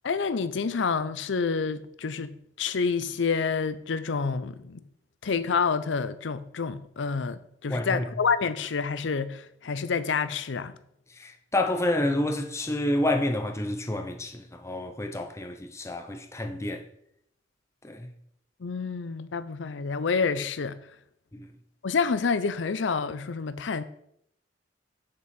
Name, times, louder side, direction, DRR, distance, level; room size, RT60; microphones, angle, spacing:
voice 1, 0.0-4.8 5.2-10.8 18.6-20.9 21.8-23.8, left 5 dB, 85° left, 0.6 m, -28 dB
voice 2, 7.7-8.0 11.1-16.9 17.8-18.1 21.3-21.5, left 1 dB, 15° left, 0.7 m, -29 dB
6.9 x 6.8 x 4.3 m
head